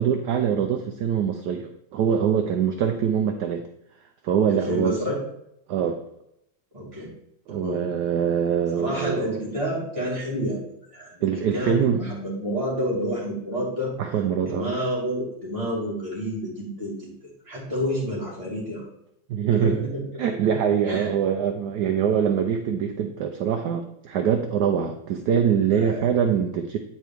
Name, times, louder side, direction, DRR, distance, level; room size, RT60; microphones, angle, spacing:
voice 1, 0.0-3.6 4.2-5.0 5.7-6.0 7.5-9.4 11.2-12.0 14.0-14.7 19.3-19.9 20.2-26.8, right 7 dB, 75° right, 5 dB, 0.9 m, -23 dB
voice 2, 4.5-5.2 6.7-7.1 7.5-7.8 8.7-10.7 10.9-13.9 14.5-17.1 17.4-18.9 19.5-20.0 20.4-20.5 20.8-21.1 25.7-26.1, equal, 15° right, -6 dB, 2.4 m, -29 dB
9.1 x 4.5 x 3.4 m, 0.79 s
omnidirectional pair, 2.2 m